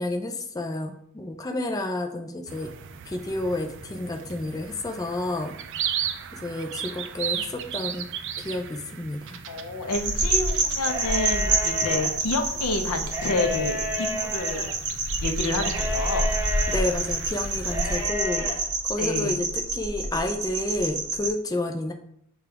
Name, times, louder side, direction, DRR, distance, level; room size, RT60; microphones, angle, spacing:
voice 1, 0.0-2.7 3.1-5.5 6.3-8.1 8.4-9.4 16.7-21.9, left 2 dB, 15° left, 4 dB, 0.3 m, -30 dB
sound 1, 2.5-18.1, right 8 dB, 55° right, 0.3 m, -37 dB
voice 2, 9.5-14.7 15.2-16.4 19.0-19.4, left 2 dB, 85° left, 6 dB, 0.6 m, -29 dB
sound 2, 9.9-21.3, right 2 dB, 75° right, 0.9 m, -28 dB
sound 3, 10.8-12.1 13.0-14.7 15.6-16.8 17.6-18.5, left 1 dB, 15° right, 0.9 m, -32 dB
6.8 x 2.3 x 3.4 m, 0.71 s
head